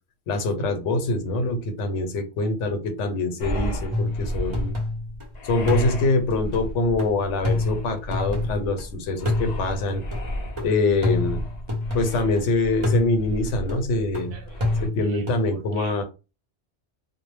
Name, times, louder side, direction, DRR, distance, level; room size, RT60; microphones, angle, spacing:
voice 1, 0.3-4.7 5.5-10.0 10.6-11.4 11.9-14.4 14.8-16.0, left 2 dB, 80° left, 0.9 m, -24 dB
sound 1, 3.4-14.9, equal, 50° left, 0.5 m, -34 dB
sound 2, 3.9-5.2 5.7-8.8 9.2-12.4 12.8-15.5, left 2 dB, 30° right, 0.6 m, -28 dB
voice 2, 15.5-16.0, right 6 dB, 65° right, 0.8 m, -46 dB
2.1 x 2.0 x 3.2 m
omnidirectional pair, 1.2 m